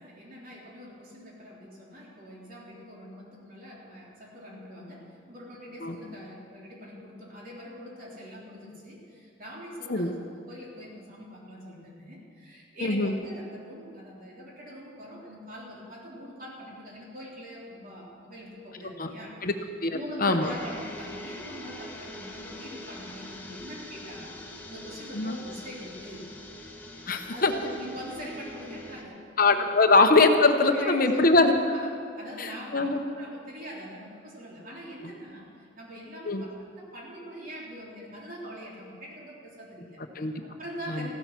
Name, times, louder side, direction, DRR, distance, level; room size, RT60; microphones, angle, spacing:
voice 1, 0.0-19.4 19.9-24.4 24.7-26.3 27.3-29.9 30.7-31.2 31.6-35.5 35.8-40.0 40.4-41.1, equal, 50° right, -4 dB, 3.4 m, -43 dB
voice 2, 12.8-13.2 19.0-19.1 19.4-19.5 19.8-20.5 25.1-25.4 27.1-27.5 29.4-31.5 32.4-33.0 35.0-35.1 36.3-36.4 40.1-40.3 40.9-41.1, left 3 dB, 50° left, 6 dB, 0.9 m, -22 dB
sound 1, 20.4-29.0, left 1 dB, 10° left, 1.5 m, -43 dB
15.0 x 12.5 x 6.0 m, 2.3 s
head